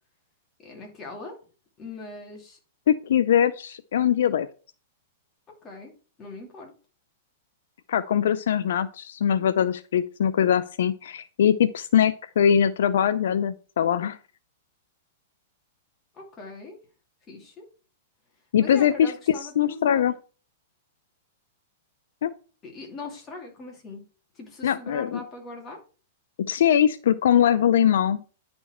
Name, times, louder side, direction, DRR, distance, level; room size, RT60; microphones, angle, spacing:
voice 1, 0.6-1.4 1.8-2.6 5.6-5.9 6.2-6.7 16.1-16.8 17.3-17.6 18.6-20.1 22.6-24.1 24.3-25.8, left 3 dB, 20° left, 1 dB, 2.5 m, -40 dB
voice 2, 2.9-4.5 7.9-14.2 18.5-19.1 19.6-20.1 22.2-22.3 24.6-25.2 26.5-28.2, left 9 dB, 75° left, 13 dB, 0.5 m, -22 dB
10.0 x 4.3 x 4.3 m, 0.37 s
hypercardioid pair, 145°, 0 cm